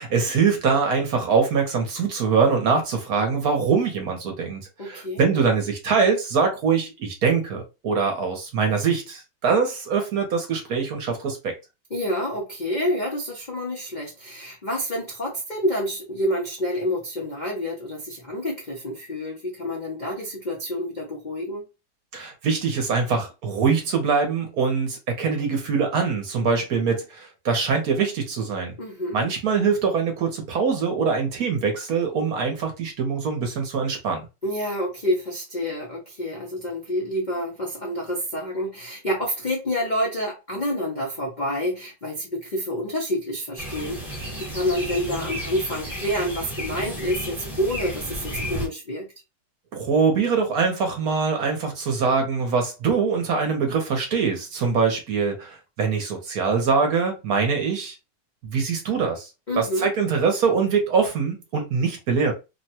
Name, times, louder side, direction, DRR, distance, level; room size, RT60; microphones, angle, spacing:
voice 1, 0.0-11.5 22.1-28.7 29.1-34.3 49.7-57.9 58.4-59.3 59.5-62.3, right 5 dB, 60° right, 1.1 m, -23 dB
voice 2, 4.8-5.3 11.9-21.6 28.8-29.3 34.4-49.1 59.5-59.9, equal, 70° left, 0.4 m, -28 dB
sound 1, 43.6-48.7, equal, ahead, 0.7 m, -33 dB
3.2 x 2.2 x 2.8 m
omnidirectional pair, 2.0 m